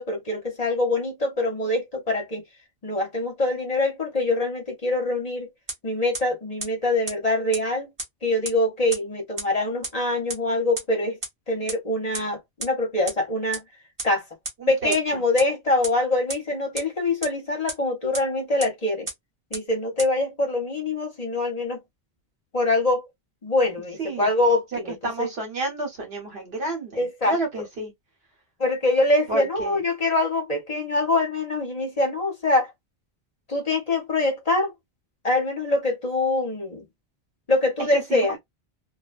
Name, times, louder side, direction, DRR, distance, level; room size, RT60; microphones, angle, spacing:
voice 1, 0.0-2.4 2.8-5.5 5.8-7.9 8.2-11.2 11.5-13.6 14.0-14.2 14.7-19.1 19.5-21.8 22.5-23.1 23.4-25.3 27.0-27.4 28.6-32.7 33.5-34.7 35.2-36.9 37.5-38.4, left 2 dB, 40° left, 0.9 m, -24 dB
sound 1, 5.7-5.8 6.1-6.2 6.6-6.7 7.1-7.2 7.5-7.6 8.0-8.1 8.4-8.5 8.9-9.0 9.4-9.5 9.8-9.9 10.3-10.4 10.8-10.9 11.2-11.3 11.7-11.8 12.1-12.2 12.6-12.7 13.1-13.2 13.5-13.6 14.0-14.1 14.4-14.5 14.9-15.0 15.4-15.5 15.8-15.9 16.3-16.4 16.8-16.9 17.2-17.3 17.7-17.8 18.1-18.2 18.6-18.7 19.1-19.2 19.5-19.6 20.0-20.1, right 2 dB, 35° right, 1.0 m, -30 dB
voice 2, 14.6-15.2 24.0-24.3 24.7-27.9 29.3-29.8 37.9-38.4, right 2 dB, 70° right, 1.4 m, -31 dB
2.5 x 2.2 x 2.4 m
omnidirectional pair, 1.1 m